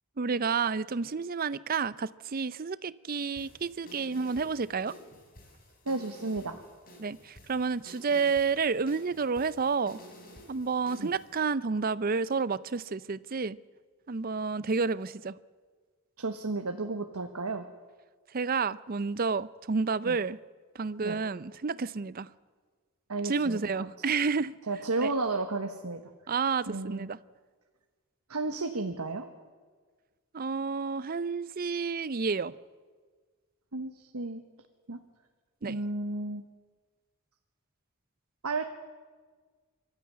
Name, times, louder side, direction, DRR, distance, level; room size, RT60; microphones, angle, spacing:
voice 1, 0.2-4.9 7.0-10.0 10.5-13.6 14.1-15.4 18.3-20.4 20.7-22.3 23.2-24.5 25.0-25.1 26.3-27.2 30.3-32.5 35.6-35.8, right 5 dB, 40° right, 0.5 m, -30 dB
sound 1, 3.4-11.4, equal, 40° left, 4.3 m, -52 dB
voice 2, 5.8-6.6 11.0-11.1 16.2-17.7 20.0-20.2 21.0-21.2 23.1-23.9 24.7-26.0 26.7-27.1 28.3-29.3 33.7-34.4 34.9-35.0 35.7-36.4 38.4-38.6, right 3 dB, 85° right, 1.3 m, -33 dB
23.5 x 13.0 x 9.8 m
head